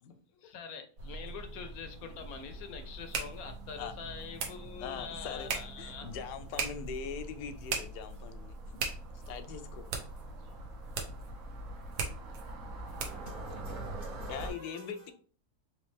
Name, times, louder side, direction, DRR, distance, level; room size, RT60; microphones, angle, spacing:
voice 1, 0.0-6.1, left 6 dB, 70° left, 1.0 m, -45 dB
sound 1, 1.0-14.5, right 2 dB, 60° right, 1.2 m, -44 dB
sound 2, 1.8-13.4, right 5 dB, 80° right, 1.4 m, -41 dB
voice 2, 4.8-5.5 5.8-8.8 9.3-9.9 14.3-15.1, left 7 dB, 90° left, 1.2 m, -41 dB
voice 3, 13.1-15.1, left 1 dB, 45° right, 0.8 m, -50 dB
4.1 x 3.1 x 3.3 m
omnidirectional pair, 1.7 m